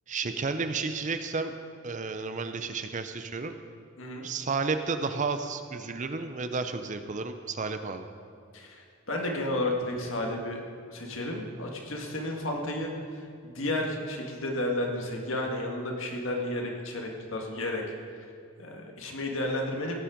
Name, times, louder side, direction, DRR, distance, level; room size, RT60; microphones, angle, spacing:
voice 1, 0.1-1.5 1.8-3.5 4.2-8.1, right 4 dB, 35° right, 8 dB, 0.6 m, -32 dB
voice 2, 4.0-4.3 8.5-10.6 10.9-17.8 18.6-20.0, left 1 dB, 65° left, 1 dB, 1.9 m, -32 dB
17.0 x 7.4 x 5.1 m, 2.3 s
head